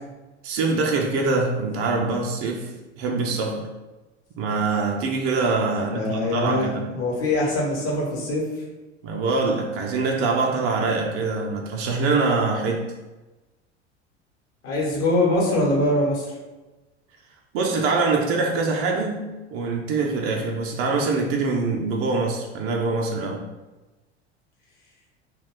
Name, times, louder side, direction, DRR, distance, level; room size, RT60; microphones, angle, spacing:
voice 1, 0.4-3.7 4.4-6.9 9.0-12.9 17.5-23.4, right 3 dB, 40° right, 1 dB, 0.5 m, -24 dB
voice 2, 5.7-8.4 14.6-16.3, left 1 dB, 45° left, -2 dB, 1.1 m, -23 dB
2.3 x 2.2 x 3.5 m, 1.1 s
figure-of-eight pair, 75°, 34 cm